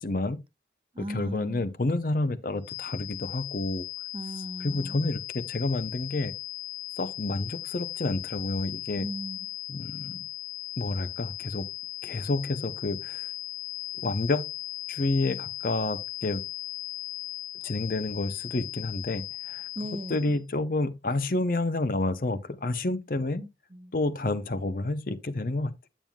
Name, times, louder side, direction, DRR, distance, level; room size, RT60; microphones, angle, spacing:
voice 1, 0.0-0.4 1.0-3.8 4.6-6.3 7.0-9.1 9.7-10.2 10.8-11.7 12.0-13.3 14.0-14.4 14.9-16.4 17.6-19.6 20.1-23.4 23.9-25.9, left 2 dB, 50° left, 0.7 m, -29 dB
voice 2, 0.9-1.6 4.1-5.0 9.0-9.5 19.7-20.3 23.4-23.9, equal, 30° right, 0.8 m, -38 dB
sound 1, 2.6-20.4, left 13 dB, 85° left, 1.9 m, -38 dB
9.1 x 8.7 x 2.3 m
head